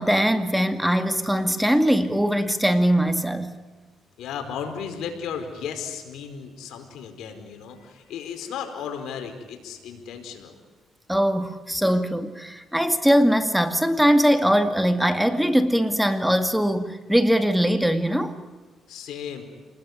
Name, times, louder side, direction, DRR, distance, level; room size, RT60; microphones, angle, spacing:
voice 1, 0.0-3.5 11.1-18.3, equal, ahead, 8 dB, 2.2 m, -21 dB
voice 2, 4.2-10.5 18.9-19.4, left 7 dB, 80° left, 5 dB, 4.9 m, -35 dB
28.0 x 20.5 x 9.7 m, 1.3 s
cardioid pair, 90°, 0 cm